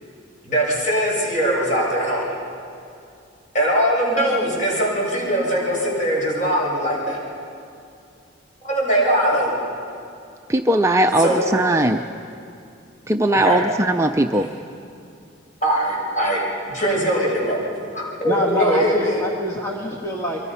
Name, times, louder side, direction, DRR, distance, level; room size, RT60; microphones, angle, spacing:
voice 1, 0.4-2.4 3.5-7.2 8.6-9.5 11.2-11.4 13.4-13.6 14.4-14.5 15.6-16.4 16.7-17.6 17.9-19.2, right 1 dB, 40° left, -4 dB, 6.9 m, -21 dB
voice 2, 10.5-12.0 13.1-14.5, right 1 dB, 15° right, 5 dB, 0.4 m, -19 dB
voice 3, 18.2-20.4, left 2 dB, 15° left, -4 dB, 1.6 m, -25 dB
27.5 x 23.5 x 5.6 m, 2.5 s
head